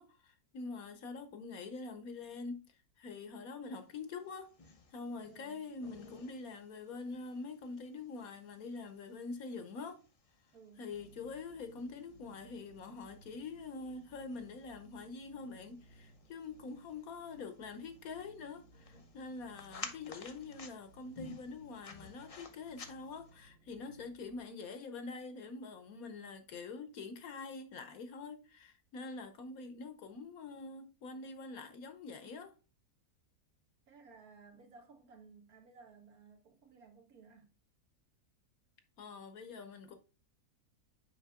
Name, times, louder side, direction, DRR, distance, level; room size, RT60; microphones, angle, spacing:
voice 1, 0.0-4.5 4.9-10.0 10.8-32.5 39.0-40.0, left 4 dB, 65° left, 1.2 m, -45 dB
sound 1, 4.0-23.4, left 4 dB, 40° left, 0.5 m, -55 dB
voice 2, 5.2-5.7 10.5-10.9 33.9-37.5, right 4 dB, 60° right, 1.7 m, -58 dB
sound 2, 10.9-24.5, right 1 dB, 45° right, 1.3 m, -62 dB
6.4 x 5.1 x 3.5 m
omnidirectional pair, 1.8 m